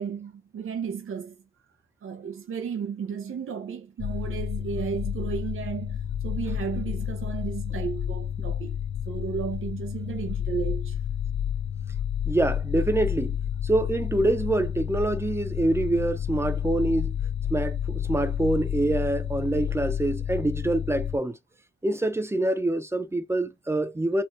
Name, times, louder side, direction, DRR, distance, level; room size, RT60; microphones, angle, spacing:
voice 1, 0.0-1.4 2.0-6.0 6.2-8.8 9.1-11.0, right 7 dB, 90° right, 0.7 m, -33 dB
sound 1, 4.0-21.2, left 9 dB, 70° left, 0.6 m, -30 dB
voice 2, 12.3-13.4 13.6-17.1 17.5-21.4 21.8-24.2, right 1 dB, 10° right, 0.6 m, -25 dB
4.3 x 2.3 x 3.0 m
wide cardioid pair, 115°, 21 cm